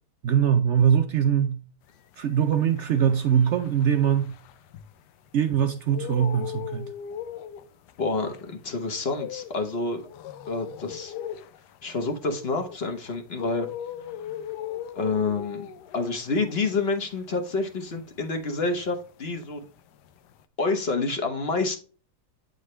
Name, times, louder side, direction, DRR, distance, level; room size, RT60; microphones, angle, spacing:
voice 1, 0.2-1.6 2.2-4.3 5.3-6.9, right 8 dB, 70° right, 0.6 m, -22 dB
sound 1, 2.1-5.3 5.7-19.1 19.4-20.4, left 10 dB, 80° left, 1.2 m, -39 dB
voice 2, 8.0-8.4 8.6-10.0 10.5-11.1 11.8-13.7 14.9-15.7 15.9-19.7 20.6-21.8, left 3 dB, 40° left, 1.1 m, -28 dB
8.5 x 3.9 x 3.1 m
omnidirectional pair, 1.8 m